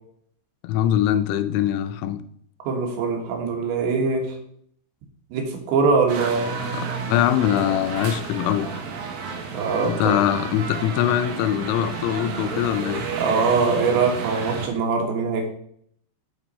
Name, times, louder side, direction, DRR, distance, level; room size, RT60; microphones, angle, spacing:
voice 1, 0.6-2.2 7.1-8.7 9.8-13.1, left 11 dB, 90° left, 10 dB, 2.9 m, -22 dB
voice 2, 2.6-4.4 5.3-6.6 9.5-10.2 13.2-15.5, right 4 dB, 85° right, 1 dB, 3.8 m, -22 dB
sound 1, 6.1-14.7, right 5 dB, 65° right, 2.6 m, -31 dB
8.8 x 6.0 x 4.2 m, 0.66 s
omnidirectional pair, 5.0 m